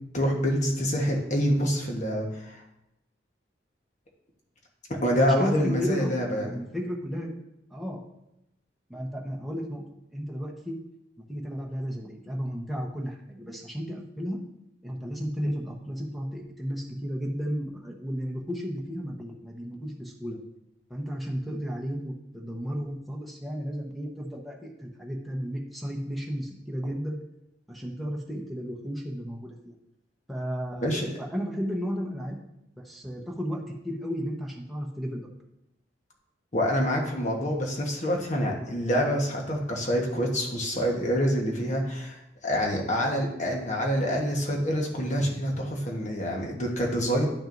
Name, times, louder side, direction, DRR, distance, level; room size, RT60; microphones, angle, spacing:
voice 1, 0.1-2.6 5.0-6.5 30.8-31.1 36.5-47.3, equal, 40° left, 0 dB, 1.3 m, -26 dB
voice 2, 5.1-7.3 7.7-8.0 8.9-10.7 11.3-14.4 14.8-20.4 20.9-27.2 27.7-29.7 30.3-32.4 32.8-35.3, equal, ahead, -3 dB, 1.0 m, -33 dB
10.5 x 6.1 x 2.6 m, 0.86 s
head